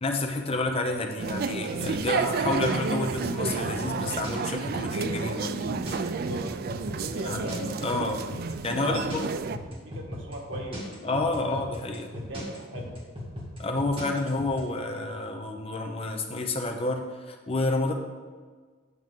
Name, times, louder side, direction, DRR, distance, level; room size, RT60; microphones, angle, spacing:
voice 1, 0.0-5.6 7.2-8.2 8.6-9.3 11.0-12.1 13.6-17.9, left 2 dB, 30° left, 3 dB, 0.7 m, -29 dB
sound 1, 1.2-9.6, right 4 dB, 50° right, 0.3 m, -31 dB
sound 2, 1.8-14.6, left 1 dB, 30° right, 2.3 m, -37 dB
voice 2, 6.0-6.5 6.9-7.7 8.8-9.2 9.7-11.1 11.4-11.6 12.1-13.0, equal, 90° right, 0 dB, 1.5 m, -39 dB
9.4 x 6.3 x 3.7 m, 1.5 s
head